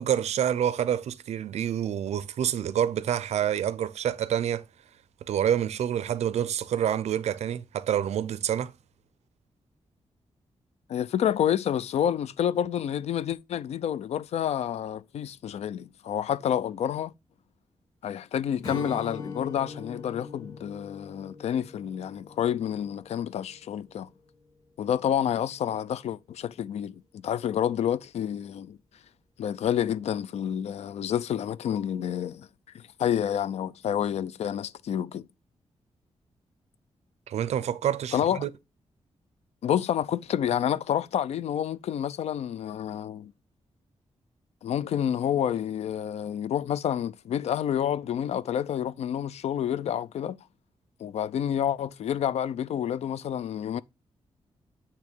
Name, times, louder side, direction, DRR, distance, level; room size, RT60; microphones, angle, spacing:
voice 1, 0.0-4.6 5.3-8.7 37.3-38.5, right 9 dB, 90° right, 0.5 m, -27 dB
voice 2, 10.9-17.1 18.0-24.1 24.8-28.8 29.4-32.5 32.7-35.3 38.1-38.4 39.6-43.3 44.6-50.4 51.0-53.8, left 9 dB, 80° left, 0.4 m, -29 dB
Strum, 18.6-24.1, left 3 dB, 30° left, 1.5 m, -42 dB
8.3 x 3.0 x 4.5 m
wide cardioid pair, 180°, 11 cm